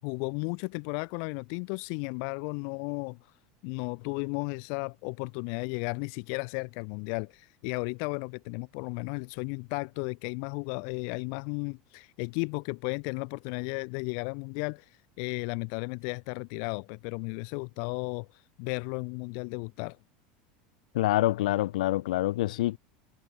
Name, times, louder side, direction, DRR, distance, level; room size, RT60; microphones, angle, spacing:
voice 1, 0.0-3.2 3.6-20.0, left 40 dB or more, 65° left, 6.6 m, -34 dB
voice 2, 20.9-22.8, left 16 dB, 90° left, 2.9 m, -26 dB
supercardioid pair, 130°, 4 cm